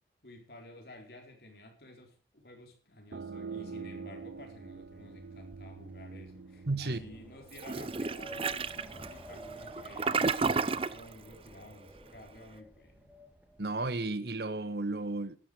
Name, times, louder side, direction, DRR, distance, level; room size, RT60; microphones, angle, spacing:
voice 1, 0.2-13.2, left 1 dB, 60° left, 4.1 m, -52 dB
sound 1, 3.1-8.5, right 5 dB, 80° right, 0.6 m, -45 dB
Wind, 4.0-14.1, equal, 10° right, 2.5 m, -52 dB
voice 2, 6.7-7.0 13.6-15.4, right 2 dB, 65° right, 1.2 m, -33 dB
Toilet flush, 7.6-11.0, right 4 dB, 30° right, 0.5 m, -32 dB
13.0 x 12.5 x 4.8 m
head